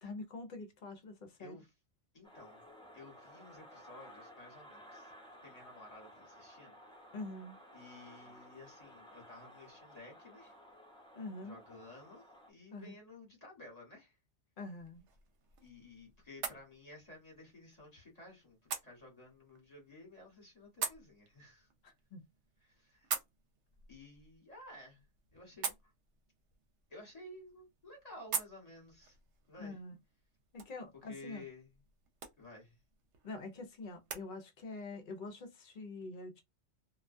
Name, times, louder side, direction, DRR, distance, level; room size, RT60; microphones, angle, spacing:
voice 1, 0.0-1.5 7.1-7.6 11.1-11.6 12.7-12.9 14.6-15.0 21.8-22.2 29.6-30.0 30.5-31.4 33.2-36.4, left 2 dB, 55° left, 0.6 m, -45 dB
voice 2, 1.4-1.7 2.1-2.6 2.9-5.1 5.4-6.8 7.0-7.1 7.7-10.5 11.4-14.2 15.6-21.7 22.6-23.1 23.9-25.9 26.9-29.2 29.5-29.8 31.1-31.8 32.4-32.8, left 2 dB, 35° left, 1.1 m, -54 dB
sound 1, 2.2-12.5, equal, 5° left, 0.5 m, -56 dB
sound 2, 14.8-34.3, right 6 dB, 75° right, 0.9 m, -46 dB
2.2 x 2.2 x 2.5 m
omnidirectional pair, 1.2 m